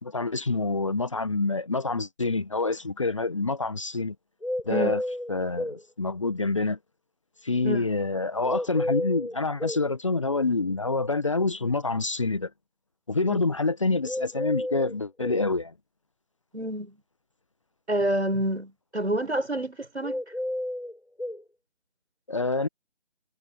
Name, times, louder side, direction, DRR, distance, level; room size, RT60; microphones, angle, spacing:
voice 1, 0.0-4.1 4.7-5.0 5.3-6.8 7.4-12.5 13.1-15.7 22.3-22.7, left 3 dB, 30° left, 1.3 m, -27 dB
sound 1, 4.4-5.8 8.4-9.8 14.0-15.4 20.0-21.4, left 1 dB, 80° left, 8.0 m, -31 dB
voice 2, 16.5-17.0 17.9-20.2, right 1 dB, 75° right, 6.1 m, -28 dB
figure-of-eight pair, 160°, 34 cm